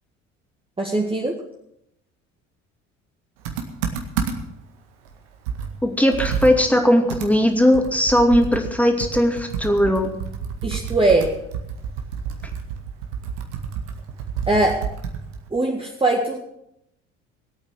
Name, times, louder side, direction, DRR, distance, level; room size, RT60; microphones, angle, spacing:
voice 1, 0.8-1.4 10.6-11.4 14.5-14.9 15.5-16.4, right 2 dB, 15° right, -1 dB, 1.9 m, -21 dB
Computer keyboard, 3.4-4.6 5.1-5.2 5.5-8.7 9.0-15.5, right 7 dB, 70° right, 1.9 m, -30 dB
voice 2, 5.8-10.2, equal, 5° left, 3 dB, 2.6 m, -18 dB
19.5 x 8.7 x 6.2 m, 0.79 s
figure-of-eight pair, 60°, 38 cm